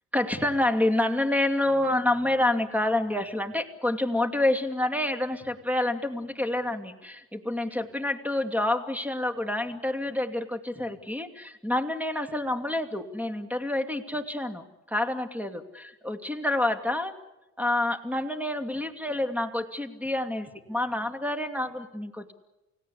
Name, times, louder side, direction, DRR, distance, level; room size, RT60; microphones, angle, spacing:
voice 1, 0.1-17.1 17.6-22.3, left 1 dB, 5° right, 8 dB, 2.6 m, -28 dB
29.0 x 17.0 x 8.4 m, 1.0 s
cardioid pair, 90°, 30 cm